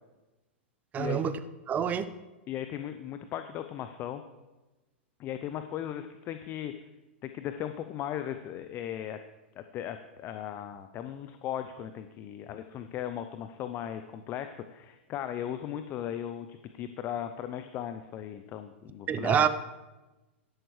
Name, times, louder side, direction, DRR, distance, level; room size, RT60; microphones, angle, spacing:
voice 1, 0.9-1.3 1.7-2.0 19.1-19.5, right 8 dB, 25° right, 12 dB, 0.7 m, -26 dB
voice 2, 2.5-4.2 5.2-6.7 7.2-9.2 9.6-19.4, left 10 dB, 35° left, 9 dB, 0.6 m, -37 dB
12.5 x 11.5 x 3.2 m, 1.1 s
hypercardioid pair, 105°, 6 cm